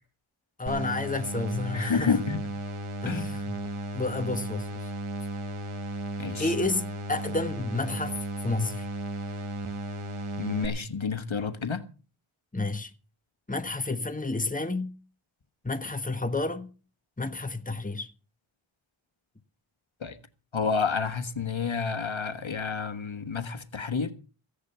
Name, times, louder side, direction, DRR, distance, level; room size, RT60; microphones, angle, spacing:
voice 1, 0.6-2.2 3.0-3.6 3.9-4.9 6.4-8.2 8.4-8.9 12.5-12.9 13.5-14.9 15.6-16.7 17.2-18.1, left 3 dB, 15° left, 1.4 m, -30 dB
sound 1, 0.7-10.7, right 1 dB, 80° right, 1.6 m, -35 dB
voice 2, 1.7-2.4 3.0-3.3 6.2-6.5 10.4-11.9 20.0-20.2 20.5-24.1, left 5 dB, 70° left, 1.5 m, -29 dB
15.5 x 10.5 x 5.8 m
wide cardioid pair, 50°, 49 cm